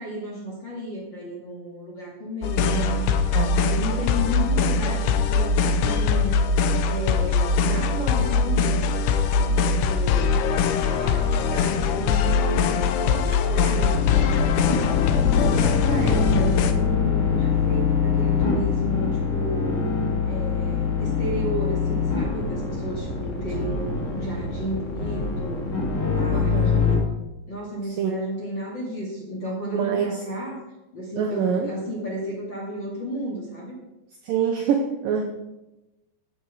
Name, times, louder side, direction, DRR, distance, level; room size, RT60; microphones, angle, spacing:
voice 1, 0.0-3.1 3.5-6.4 6.8-8.8 9.3-10.4 10.8-19.9 20.3-25.6 25.9-27.0 27.5-30.6 30.9-33.8 35.2-35.3, right 1 dB, 35° left, -4 dB, 2.2 m, -33 dB
sound 1, 2.4-16.7, left 5 dB, 75° left, 2.5 m, -22 dB
voice 2, 2.7-3.6 23.6-23.7 26.3-26.8 28.0-28.1 29.7-30.2 31.2-31.7 34.2-35.2, right 7 dB, 80° right, 3 dB, 2.0 m, -26 dB
sound 2, 13.9-27.0, left 6 dB, 50° left, 1.3 m, -24 dB
14.5 x 8.2 x 4.8 m, 1.0 s
omnidirectional pair, 5.2 m